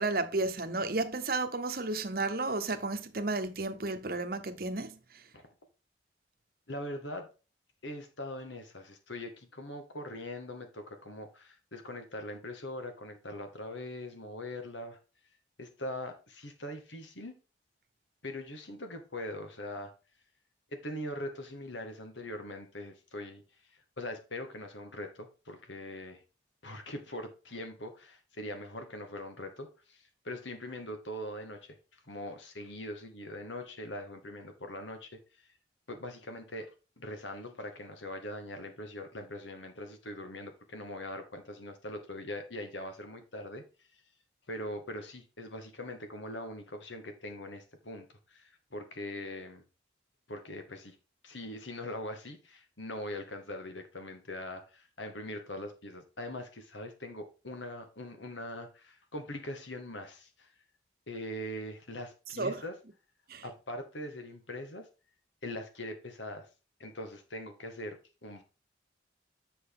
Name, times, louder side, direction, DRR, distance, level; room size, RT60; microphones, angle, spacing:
voice 1, 0.0-5.0 62.4-62.6 63.3-63.4, right 3 dB, 50° right, 1.0 m, -32 dB
voice 2, 6.7-7.3 7.8-15.0 15.6-17.4 18.2-19.9 20.7-23.4 24.0-26.2 26.6-31.8 32.1-35.5 35.9-36.7 37.0-43.6 44.5-49.6 50.3-51.0 51.2-60.5 61.1-62.7 63.4-64.9 65.4-66.5 66.8-68.4, left 1 dB, 80° left, 2.0 m, -42 dB
7.8 x 6.4 x 3.8 m
head